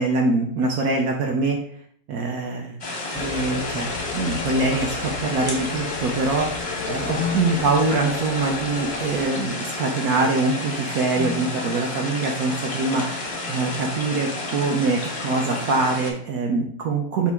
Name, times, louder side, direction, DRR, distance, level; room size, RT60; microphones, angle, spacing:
voice 1, 0.0-1.6 2.1-2.8 3.1-17.3, right 3 dB, 75° right, 1 dB, 1.0 m, -24 dB
sound 1, 2.8-16.1, left 2 dB, 35° left, 0.5 m, -31 dB
sound 2, 3.1-9.2, left 6 dB, 85° left, 1.2 m, -34 dB
4.5 x 2.9 x 3.4 m, 0.62 s
omnidirectional pair, 1.6 m